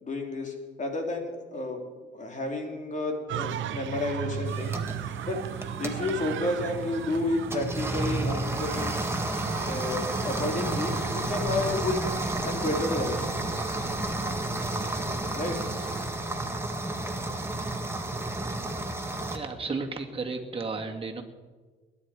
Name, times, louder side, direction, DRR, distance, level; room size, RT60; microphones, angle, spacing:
voice 1, 0.0-1.9 2.1-4.7 5.3-5.4 5.8-9.1 9.6-12.0 12.4-13.3 15.3-15.7, left 2 dB, 40° left, 2 dB, 3.0 m, -31 dB
sound 1, 3.3-12.2, right 10 dB, 75° right, 0.8 m, -37 dB
sound 2, 4.4-19.4, right 2 dB, 10° right, 1.8 m, -32 dB
sound 3, 9.3-16.1, left 3 dB, 85° left, 3.1 m, -45 dB
voice 2, 19.3-21.2, right 4 dB, 30° right, 1 dB, 2.2 m, -33 dB
21.5 x 10.0 x 4.9 m, 1.4 s
cardioid pair, 90°, 20 cm